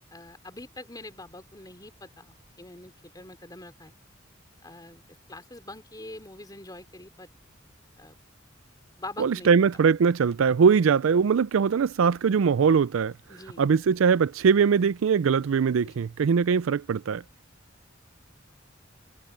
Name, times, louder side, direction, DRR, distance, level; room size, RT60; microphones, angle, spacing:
voice 1, 0.1-3.9 4.6-5.0 5.3-7.3 8.0-8.2 9.0-9.5 13.3-13.7 15.8-16.1, left 2 dB, 20° left, 3.5 m, -44 dB
voice 2, 9.2-13.1 13.6-17.2, right 6 dB, 80° right, 0.4 m, -21 dB
head